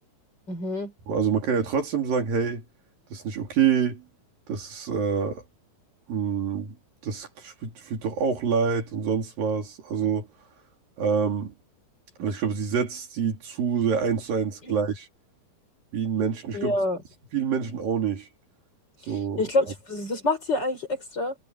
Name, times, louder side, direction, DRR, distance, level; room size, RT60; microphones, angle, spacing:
voice 1, 0.5-0.9 14.6-14.8 16.5-17.0 19.0-21.4, left 2 dB, 30° left, 5.3 m, -27 dB
voice 2, 1.1-2.6 3.1-4.0 4.5-5.4 6.1-6.8 7.0-10.3 11.0-11.5 12.2-15.1 15.9-16.7 17.3-18.3 19.1-19.4, right 6 dB, 70° right, 4.8 m, -26 dB
omnidirectional pair, 4.3 m